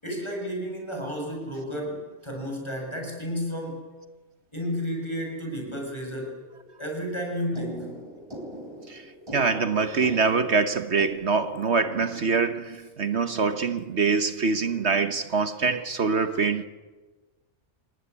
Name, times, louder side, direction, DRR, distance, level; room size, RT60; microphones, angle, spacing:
voice 1, 0.0-3.8 4.5-6.4 6.8-8.1, equal, 20° left, 7.6 m, -32 dB
sound 1, 4.6-11.1, equal, 20° right, 4.0 m, -43 dB
voice 2, 9.3-16.6, right 4 dB, 65° right, 1.4 m, -24 dB
27.5 x 18.5 x 9.8 m
omnidirectional pair, 1.3 m